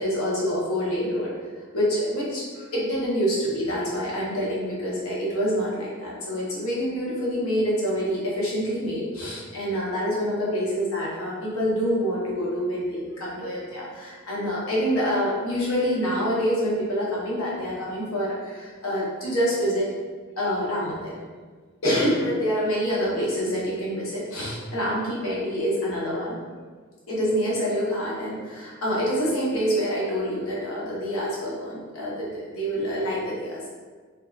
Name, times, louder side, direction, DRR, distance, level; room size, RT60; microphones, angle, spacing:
voice 1, 0.0-1.3 1.7-19.8 20.4-21.2 21.8-26.4 27.1-33.7, equal, 90° left, -6 dB, 0.9 m, -26 dB
3.5 x 2.1 x 2.4 m, 1.5 s
head